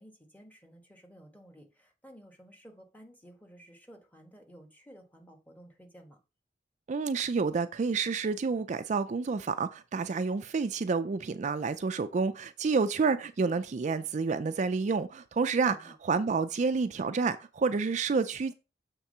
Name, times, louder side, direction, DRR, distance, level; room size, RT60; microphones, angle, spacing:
voice 1, 0.0-6.2 15.6-15.9, equal, 10° left, 1.4 m, -54 dB
voice 2, 6.9-18.5, right 4 dB, 45° right, 0.4 m, -29 dB
7.1 x 3.6 x 5.4 m
head